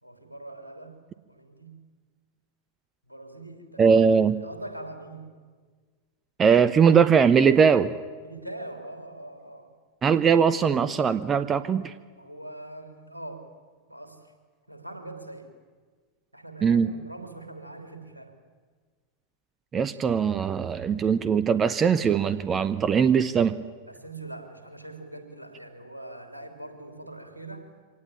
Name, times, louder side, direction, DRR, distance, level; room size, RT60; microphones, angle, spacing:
voice 1, 0.0-1.0 1.3-1.8 3.1-5.3 8.2-9.7 12.2-13.5 13.9-14.3 14.7-15.5 16.3-18.3 23.9-27.7, right 2 dB, 85° right, 5 dB, 3.2 m, -42 dB
voice 2, 3.8-4.4 6.4-7.9 10.0-11.9 16.6-16.9 19.7-23.6, right 6 dB, 25° right, 14 dB, 0.8 m, -20 dB
24.5 x 18.5 x 8.7 m, 1.5 s
figure-of-eight pair, 90°, 0 cm